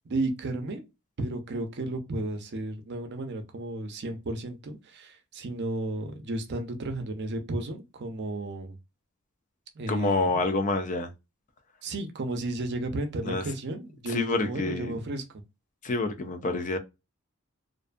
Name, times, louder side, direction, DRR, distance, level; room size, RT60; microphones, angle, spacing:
voice 1, 0.0-0.8 1.2-8.8 9.7-10.4 11.8-15.2, right 2 dB, 55° right, 0.5 m, -33 dB
voice 2, 9.9-11.1 13.2-13.4 14.1-15.0 15.8-16.8, left 3 dB, 35° left, 0.4 m, -27 dB
2.5 x 2.3 x 2.4 m
head